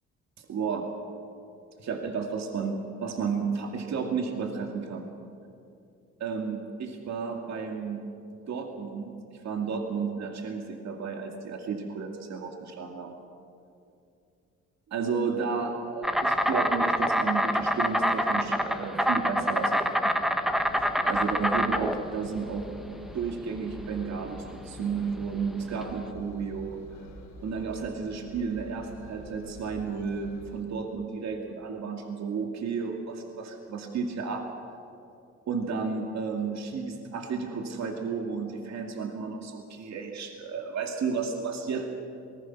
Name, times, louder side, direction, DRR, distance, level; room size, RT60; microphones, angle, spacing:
voice 1, 0.4-0.9 1.8-5.1 6.2-8.0 8.5-9.2 9.4-13.1 14.9-20.3 21.0-26.8 27.4-34.4 35.5-41.8, right 5 dB, 60° right, 2 dB, 2.4 m, -32 dB
Insect, 16.0-26.0, equal, ahead, 1.3 m, -26 dB
Engine, 20.5-30.6, equal, 85° left, 4.7 m, -47 dB
26.5 x 19.5 x 6.1 m, 2.6 s
cardioid pair, 90°, 30 cm